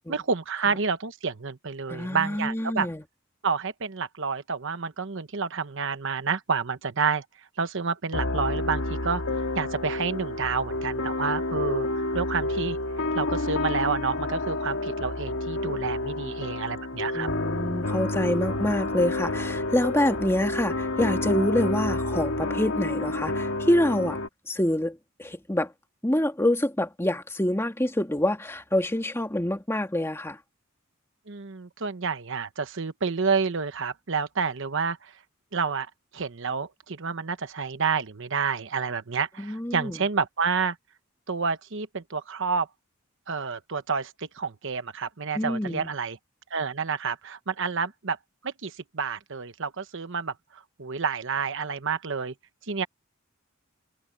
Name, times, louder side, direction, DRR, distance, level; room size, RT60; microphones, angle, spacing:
voice 1, 0.1-2.9 3.4-7.2 7.6-11.9 12.1-12.8 13.1-17.3 31.3-35.0 35.5-35.9 36.1-40.7 41.3-42.7 43.3-46.2 46.5-48.2 48.4-50.3 50.8-52.3 52.7-52.9, right 5 dB, 65° right, 1.1 m, -29 dB
voice 2, 1.9-3.0 17.1-24.2 24.5-25.7 26.0-30.4 39.4-40.1 45.3-45.9, left 1 dB, 10° left, 1.9 m, -26 dB
sound 1, 8.1-24.3, left 2 dB, 85° left, 2.6 m, -29 dB
head